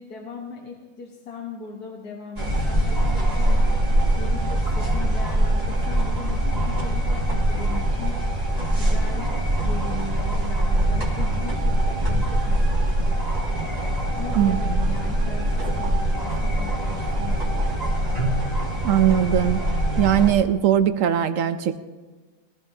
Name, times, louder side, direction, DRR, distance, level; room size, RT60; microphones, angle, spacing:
voice 1, 0.0-3.7 4.2-8.1 8.8-9.3 9.6-13.2 14.2-18.1, left 4 dB, 85° left, 0 dB, 1.8 m, -38 dB
sound 1, 2.4-20.3, right 1 dB, 25° right, 2.1 m, -23 dB
voice 2, 14.3-14.9 18.8-19.6 20.0-21.8, right 10 dB, 65° right, 11 dB, 0.9 m, -20 dB
21.5 x 14.5 x 2.7 m, 1.3 s
omnidirectional pair, 1.6 m